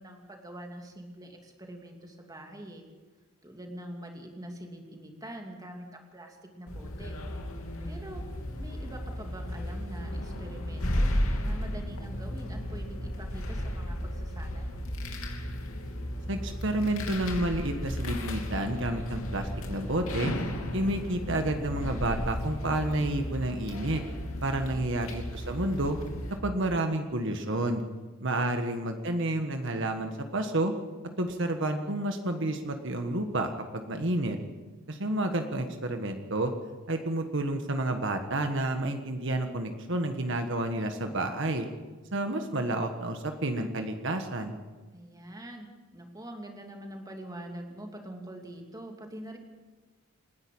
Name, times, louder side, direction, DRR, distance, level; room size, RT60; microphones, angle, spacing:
voice 1, 0.0-2.8 3.4-7.2 7.8-8.3 8.6-14.8 24.6-24.9 34.9-35.0 44.9-49.4, right 1 dB, 20° right, 2 dB, 2.7 m, -44 dB
sound 1, 6.7-26.4, left 1 dB, 85° left, 3.1 m, -34 dB
voice 2, 16.3-20.3 20.7-24.0 24.4-26.0 26.4-27.8 28.2-30.7 31.2-34.4 34.9-36.5 36.9-41.7 42.1-44.6, right 1 dB, 60° right, 6 dB, 1.5 m, -30 dB
28.0 x 11.0 x 8.6 m, 1.3 s
head